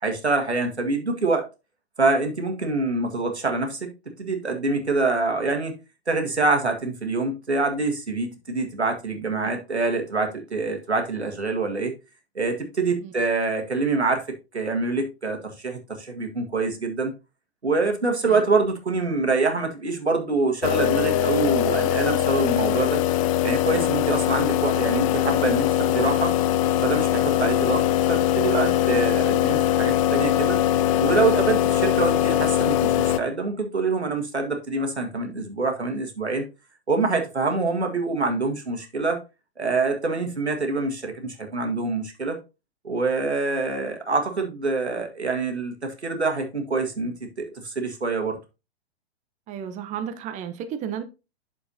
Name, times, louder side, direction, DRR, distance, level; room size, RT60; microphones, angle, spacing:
voice 1, 0.0-1.4 2.0-3.9 4.2-5.8 6.1-11.9 12.4-14.3 14.5-17.1 17.6-23.0 23.4-26.3 26.8-30.6 31.0-36.5 36.9-39.2 39.6-42.4 42.8-48.4, right 3 dB, 90° right, 1.9 m, -25 dB
sound 1, 20.6-33.2, left 11 dB, 30° left, 0.5 m, -22 dB
voice 2, 49.5-51.0, right 8 dB, 20° right, 0.8 m, -33 dB
8.6 x 6.8 x 2.7 m
figure-of-eight pair, 110°, 32 cm